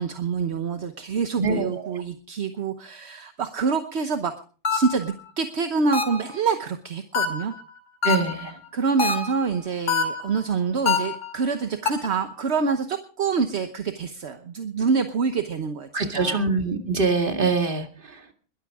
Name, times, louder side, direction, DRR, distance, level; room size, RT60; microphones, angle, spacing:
voice 1, 0.0-4.3 4.7-7.5 8.7-16.4, right 5 dB, 65° right, 8 dB, 1.3 m, -26 dB
voice 2, 1.4-1.9 8.0-8.5 15.9-18.2, right 4 dB, 45° right, 5 dB, 2.2 m, -24 dB
sound 1, 4.6-5.1 5.9-6.4 7.1-7.6 8.0-8.5 9.0-9.5 9.9-10.4 10.9-11.3 11.9-12.2, left 6 dB, 80° left, 2.9 m, -25 dB
21.5 x 14.0 x 3.6 m, 0.40 s
omnidirectional pair, 1.2 m